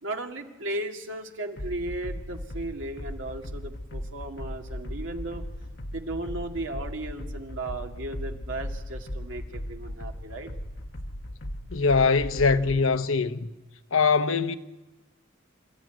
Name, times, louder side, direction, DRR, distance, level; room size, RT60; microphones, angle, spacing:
voice 1, 0.0-5.4 5.9-10.5, right 2 dB, 70° right, 2.2 m, -35 dB
sound 1, 1.6-12.8, equal, 55° left, 1.5 m, -37 dB
voice 2, 11.7-13.5 13.9-14.6, left 4 dB, 85° left, 1.0 m, -22 dB
27.5 x 14.0 x 9.2 m
head